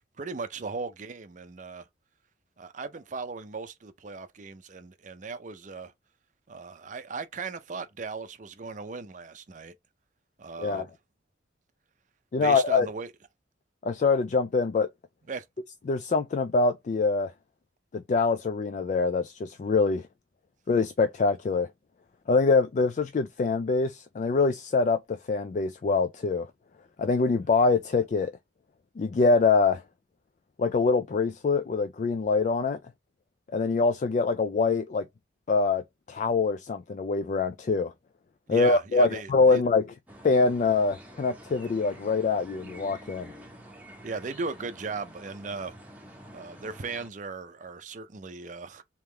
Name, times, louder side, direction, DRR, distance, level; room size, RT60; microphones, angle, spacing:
voice 1, 0.2-1.8 2.6-5.9 6.5-9.7 10.4-10.9 12.3-13.1 15.3-15.5 38.5-39.6 44.0-45.8 46.3-48.8, right 4 dB, 40° right, 0.5 m, -37 dB
voice 2, 12.3-12.9 13.8-14.9 15.9-17.3 17.9-20.1 20.7-21.7 22.3-26.5 27.0-28.3 29.0-29.8 30.6-32.8 33.5-35.1 35.5-37.9 38.5-39.8 40.2-43.3, left 4 dB, 40° left, 0.3 m, -24 dB
sound 1, 40.1-47.1, equal, 10° right, 1.0 m, -48 dB
3.5 x 2.9 x 3.3 m
head